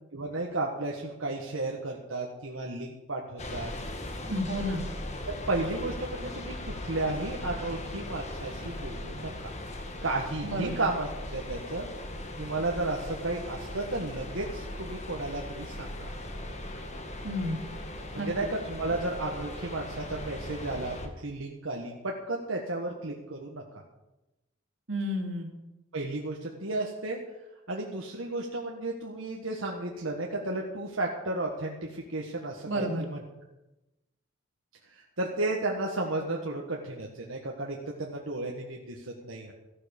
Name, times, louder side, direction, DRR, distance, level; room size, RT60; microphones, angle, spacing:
voice 1, 0.1-3.7 5.3-9.5 10.0-11.9 12.4-16.1 18.1-23.6 25.9-27.2 27.7-33.2 34.9-39.5, right 2 dB, 85° right, -1 dB, 1.6 m, -33 dB
sound 1, 3.4-21.1, left 1 dB, 35° left, 1.6 m, -39 dB
voice 2, 4.3-4.8 10.4-10.7 17.2-17.6 18.2-18.3 24.9-25.5 32.7-33.0, equal, 65° right, 2 dB, 2.6 m, -31 dB
15.0 x 11.5 x 5.3 m, 0.97 s
head